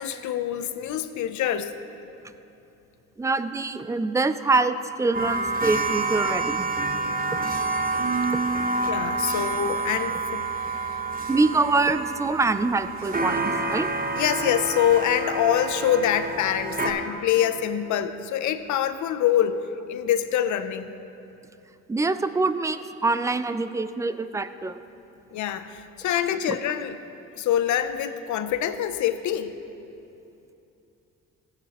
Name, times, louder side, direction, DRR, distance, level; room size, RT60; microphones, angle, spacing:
voice 1, 0.0-1.8 8.8-10.8 14.1-20.9 25.3-27.0 27.3-29.5, left 10 dB, 70° left, 11 dB, 0.6 m, -25 dB
voice 2, 3.2-6.7 8.5-8.6 11.3-13.9 21.9-24.8 26.5-26.6, right 3 dB, 10° right, 12 dB, 0.3 m, -25 dB
sound 1, 5.1-16.9, right 3 dB, 30° right, 1.0 m, -28 dB
16.5 x 8.7 x 3.0 m, 2.8 s
cardioid pair, 90°, 30 cm